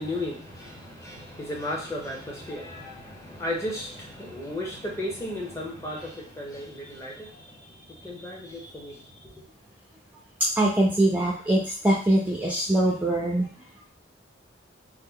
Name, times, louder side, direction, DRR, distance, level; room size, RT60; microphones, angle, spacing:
voice 1, 0.0-9.4, left 1 dB, 15° left, -3 dB, 0.8 m, -35 dB
voice 2, 10.6-13.5, right 1 dB, 10° right, -3 dB, 0.4 m, -23 dB
3.1 x 2.1 x 3.6 m, 0.42 s
head